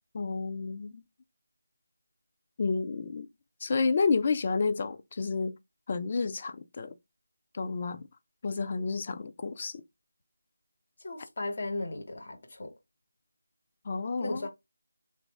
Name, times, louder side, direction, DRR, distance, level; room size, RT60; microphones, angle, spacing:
voice 1, 0.1-1.0 2.6-3.3 3.6-5.5 5.9-6.9 7.5-8.0 8.4-9.8 13.9-14.4, left 4 dB, 35° left, 0.4 m, -30 dB
voice 2, 11.0-12.7 14.2-14.5, left 2 dB, 50° left, 1.2 m, -36 dB
3.0 x 2.5 x 3.5 m
figure-of-eight pair, 165°, 0 cm